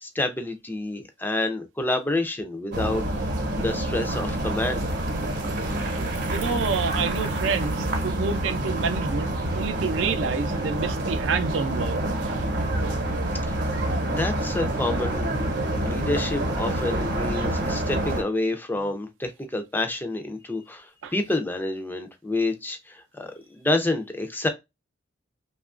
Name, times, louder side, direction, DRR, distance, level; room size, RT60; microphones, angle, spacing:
voice 1, 0.0-3.1 3.6-4.9 13.5-13.6 13.8-15.3 15.7-24.5, left 2 dB, 10° left, 0.4 m, -28 dB
sound 1, 2.7-18.2, right 1 dB, 55° right, 0.8 m, -27 dB
voice 2, 6.3-12.4 21.0-21.1, right 5 dB, 70° right, 0.4 m, -28 dB
2.9 x 2.3 x 2.3 m
head